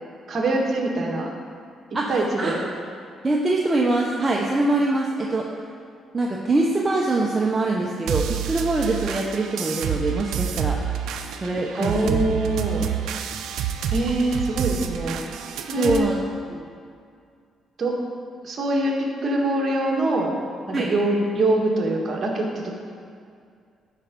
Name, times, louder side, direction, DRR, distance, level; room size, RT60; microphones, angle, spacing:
voice 1, 0.3-1.3 2.1-2.6 11.7-12.9 13.9-15.2 15.7-16.1 17.8-17.9 18.4-20.3 20.7-22.7, right 1 dB, 45° right, -2 dB, 1.7 m, -23 dB
voice 2, 2.4-2.8 3.2-5.5 6.1-10.8 11.3-12.2 15.8-16.2 16.5-16.6 20.7-20.9, right 2 dB, 25° right, -2 dB, 0.9 m, -23 dB
sound 1, 8.1-16.0, right 9 dB, 85° right, 0.5 m, -28 dB
11.5 x 4.6 x 5.3 m, 2.2 s
cardioid pair, 90°, 0 cm